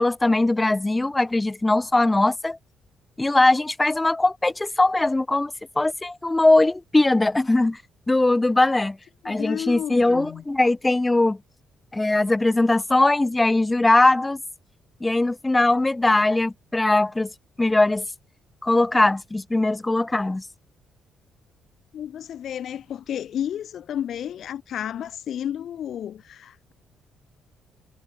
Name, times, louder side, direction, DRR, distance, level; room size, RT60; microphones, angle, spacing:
voice 1, 0.0-2.6 3.2-7.8 8.1-9.0 9.2-11.4 11.9-14.4 15.0-17.3 17.6-18.1 18.6-20.4, left 2 dB, 15° left, 0.7 m, -20 dB
voice 2, 9.2-10.4 21.9-26.7, left 10 dB, 65° left, 1.7 m, -32 dB
cardioid pair, 90°, 0 cm